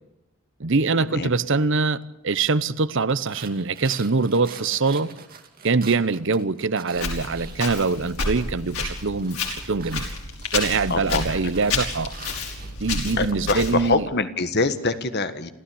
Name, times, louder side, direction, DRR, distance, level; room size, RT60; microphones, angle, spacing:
voice 1, 0.6-5.1 5.6-9.4 9.6-10.1 10.5-12.1 12.8-14.0, right 4 dB, 60° right, 0.9 m, -23 dB
sound 1, 3.1-8.4 8.7-13.3, right 5 dB, 45° right, 2.5 m, -45 dB
Walk footsteps, 6.9-13.9, left 3 dB, 90° left, 5.6 m, -30 dB
voice 2, 10.9-11.5 13.2-15.5, left 3 dB, 50° left, 1.6 m, -25 dB
28.5 x 14.5 x 8.6 m
head